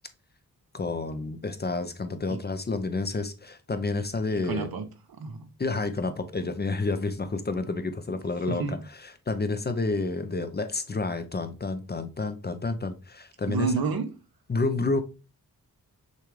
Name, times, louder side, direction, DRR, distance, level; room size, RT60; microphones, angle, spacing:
voice 1, 0.7-4.7 5.6-13.7 14.5-15.0, left 3 dB, 30° left, 0.5 m, -30 dB
voice 2, 4.3-4.9 5.2-5.5 8.5-8.8 13.5-14.1, right 4 dB, 80° right, 0.8 m, -29 dB
6.5 x 2.4 x 3.1 m
wide cardioid pair, 95°, 36 cm